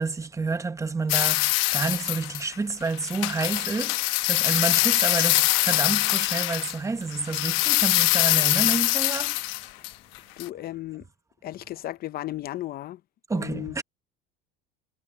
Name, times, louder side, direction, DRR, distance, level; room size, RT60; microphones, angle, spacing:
voice 1, 0.0-9.4 13.3-13.8, right 4 dB, 15° right, 1.0 m, -29 dB
sound 1, 1.1-2.5 2.9-6.8 7.1-9.9 10.2-10.5, left 21 dB, 75° left, 1.0 m, -23 dB
voice 2, 10.4-11.0 11.4-13.0 13.3-13.8, left 15 dB, 50° left, 0.7 m, -35 dB
supercardioid pair, 115°, 21 cm